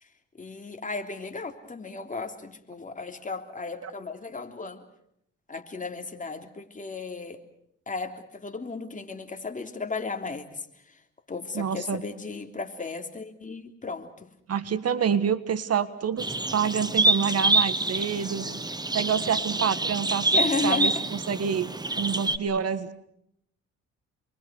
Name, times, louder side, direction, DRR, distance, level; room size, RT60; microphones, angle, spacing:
voice 1, 0.4-4.8 5.5-7.4 7.9-10.7 11.3-14.3 20.3-20.9, left 3 dB, 25° left, 5 dB, 3.3 m, -34 dB
voice 2, 11.5-12.0 14.5-16.3 16.5-18.5 18.9-21.7 21.9-22.9, right 7 dB, 55° right, 14 dB, 1.5 m, -27 dB
sound 1, 16.2-22.4, right 2 dB, 15° right, 1.4 m, -26 dB
29.0 x 23.0 x 6.4 m, 0.73 s
cardioid pair, 90°, 30 cm